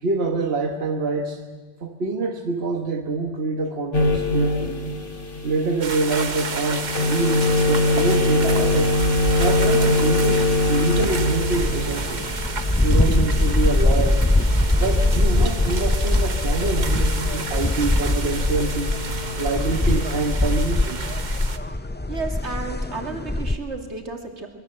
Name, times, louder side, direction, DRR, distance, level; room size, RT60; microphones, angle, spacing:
voice 1, 0.0-1.4 1.8-4.8 5.4-9.0 9.4-12.3 12.8-14.2 14.7-18.9 19.4-21.0, right 3 dB, 65° right, 4 dB, 1.5 m, -26 dB
sound 1, 3.9-20.2, left 2 dB, 50° left, 2.6 m, -24 dB
sound 2, 5.8-21.6, right 4 dB, 45° right, 1.2 m, -31 dB
sound 3, 11.5-23.6, left 2 dB, 15° left, 0.5 m, -22 dB
voice 2, 22.1-24.5, right 3 dB, 90° right, 3 dB, 3.0 m, -32 dB
24.5 x 21.0 x 7.7 m, 1.4 s
omnidirectional pair, 1.1 m